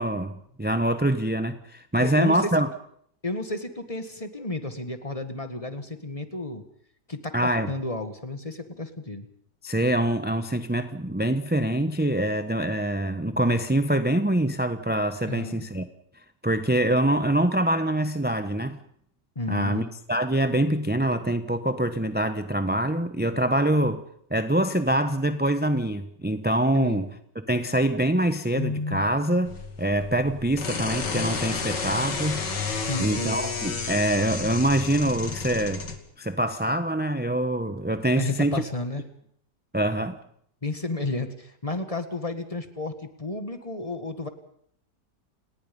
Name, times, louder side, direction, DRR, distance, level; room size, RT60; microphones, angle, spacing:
voice 1, 0.0-2.7 7.3-7.7 9.6-15.9 16.4-18.8 19.5-24.0 24.3-27.1 27.5-32.5 33.0-35.9 36.2-38.6 39.7-40.2, right 1 dB, 10° right, 9 dB, 0.7 m, -25 dB
voice 2, 2.0-2.6 3.2-6.6 7.1-9.3 15.3-15.7 19.4-19.9 26.7-27.0 28.6-29.1 32.8-33.4 38.2-39.0 40.6-44.3, left 2 dB, 20° left, 9 dB, 1.8 m, -32 dB
sound 1, 29.5-36.0, left 5 dB, 85° left, 2.9 m, -31 dB
29.5 x 19.5 x 5.4 m, 0.66 s
omnidirectional pair, 1.8 m